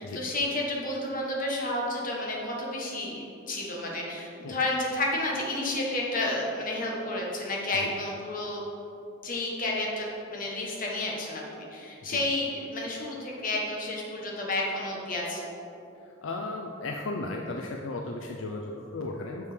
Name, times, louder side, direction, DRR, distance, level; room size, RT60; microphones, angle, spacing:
voice 1, 0.0-8.6 9.2-15.5, left 2 dB, 40° left, -2 dB, 1.3 m, -31 dB
voice 2, 16.0-19.5, left 2 dB, 70° left, 2 dB, 0.5 m, -35 dB
6.3 x 5.7 x 5.1 m, 2.9 s
head